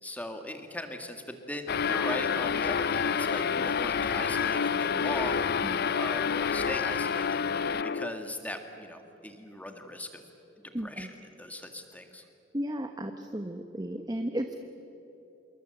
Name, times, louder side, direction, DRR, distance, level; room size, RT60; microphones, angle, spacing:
voice 1, 0.0-5.4 6.0-7.4 7.8-10.2 10.8-11.1 11.4-12.2, left 1 dB, 10° left, 5 dB, 2.0 m, -39 dB
sound 1, 1.7-8.3, left 6 dB, 55° left, 0.5 m, -28 dB
voice 2, 10.7-11.1 12.5-14.6, right 1 dB, 20° right, 6 dB, 1.0 m, -34 dB
26.5 x 22.5 x 7.9 m, 3.0 s
head